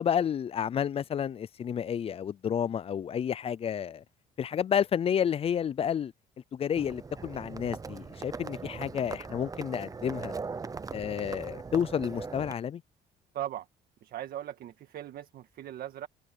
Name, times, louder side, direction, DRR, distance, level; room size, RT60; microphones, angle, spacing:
voice 1, 0.0-4.0 4.4-6.1 6.5-10.3 10.9-12.8, left 8 dB, 35° left, 0.4 m, -30 dB
Livestock farm animals working animals, 6.8-12.5, right 4 dB, 20° right, 0.7 m, -40 dB
voice 2, 13.3-13.7 14.0-16.1, right 12 dB, 65° right, 1.7 m, -39 dB
cardioid pair, 110°, 17 cm